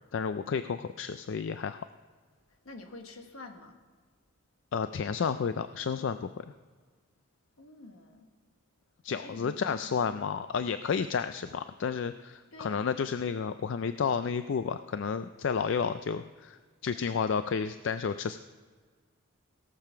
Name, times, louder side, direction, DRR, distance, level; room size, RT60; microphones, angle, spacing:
voice 1, 0.1-1.9 4.7-6.3 9.0-18.4, left 6 dB, 60° left, 11 dB, 0.3 m, -31 dB
voice 2, 2.6-3.8 7.6-8.3 9.1-10.0 12.5-13.0, left 2 dB, 80° left, 4 dB, 1.4 m, -47 dB
17.0 x 6.9 x 5.7 m, 1.5 s
head